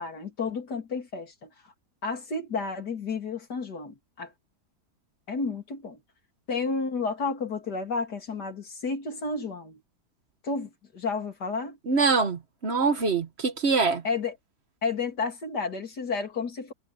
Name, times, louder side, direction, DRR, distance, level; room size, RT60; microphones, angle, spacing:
voice 1, 0.0-1.5 2.0-4.3 5.3-6.0 6.5-9.8 10.4-11.8 14.0-14.4 14.8-16.7, left 4 dB, 85° left, 3.6 m, -31 dB
voice 2, 11.9-14.0, right 4 dB, 45° right, 1.5 m, -24 dB
omnidirectional pair, 1.7 m